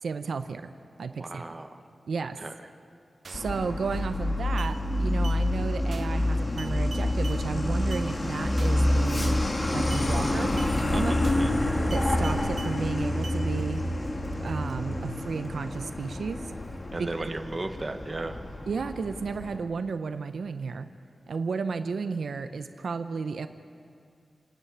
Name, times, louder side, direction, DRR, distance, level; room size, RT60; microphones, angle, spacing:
voice 1, 0.0-0.7 1.0-1.4 2.1-2.4 3.3-9.4 9.7-10.5 10.9-11.1 11.9-13.8 14.4-16.5 17.0-17.3 18.7-20.9 21.3-23.5, right 5 dB, 85° right, 9 dB, 0.7 m, -33 dB
voice 2, 1.2-1.7 2.4-2.5 10.9-11.5 16.9-18.4, right 2 dB, 30° right, 6 dB, 1.2 m, -35 dB
sound 1, 3.2-3.5 3.9-4.2 4.6-4.7 5.2-5.4 5.9-6.2 6.6-7.4 7.9-8.1 8.6-8.9 9.2-9.5 9.9-10.1 10.6-10.7 11.2-11.5 11.9-12.7 13.2-13.4, right 4 dB, 55° right, 1.3 m, -44 dB
Truck, 3.3-19.6, left 1 dB, 30° left, 1.7 m, -28 dB
28.0 x 10.0 x 9.6 m, 2.3 s
wide cardioid pair, 130°, 0 cm